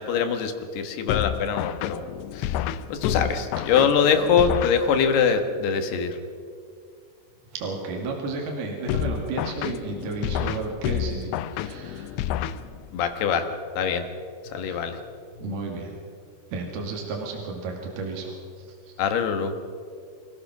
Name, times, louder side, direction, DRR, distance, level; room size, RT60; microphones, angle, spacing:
voice 1, 0.0-2.0 2.3-2.6 2.9-6.2 12.9-13.5 13.8-14.0 14.4-15.0 19.0-19.5, left 6 dB, 75° left, 7 dB, 3.4 m, -23 dB
sound 1, 1.1-5.3 8.9-13.1, left 10 dB, 90° left, 2.9 m, -30 dB
voice 2, 7.5-12.2 12.5-12.6 14.6-14.8 15.3-15.9 16.5-18.9, right 3 dB, 70° right, 0 dB, 4.1 m, -33 dB
26.0 x 16.5 x 6.1 m, 2.2 s
omnidirectional pair, 4.8 m